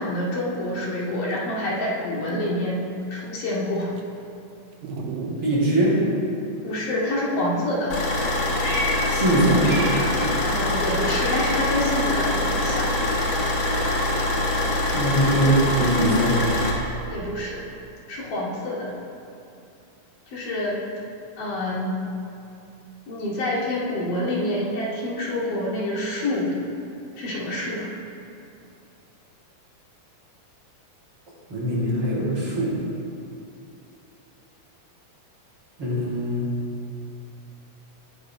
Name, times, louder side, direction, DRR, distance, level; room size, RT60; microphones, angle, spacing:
voice 1, 0.0-3.9 4.9-5.1 6.6-7.9 10.4-12.9 17.1-17.6 18.1-18.9 20.3-20.9 21.4-22.0 23.1-26.5 27.2-27.9, left 1 dB, 75° left, -8 dB, 4.0 m, -27 dB
Dog, 1.9-2.0 2.2-2.5 3.2-3.3 4.0-4.1 4.8-5.4 5.9-6.0 9.4-10.4 11.9-12.4 15.3-15.9, right 5 dB, 90° right, 2.5 m, -30 dB
voice 2, 5.4-6.0 9.1-9.6 14.9-16.4 31.5-32.8 35.8-36.5, right 1 dB, 40° right, -7 dB, 3.4 m, -22 dB
Car / Idling, 7.9-16.7, left 1 dB, 45° left, 1.7 m, -24 dB
Meow, 8.6-10.3 10.6-12.3 12.6-16.7, equal, 20° left, 2.2 m, -35 dB
20.0 x 10.0 x 2.2 m, 2.6 s
omnidirectional pair, 3.9 m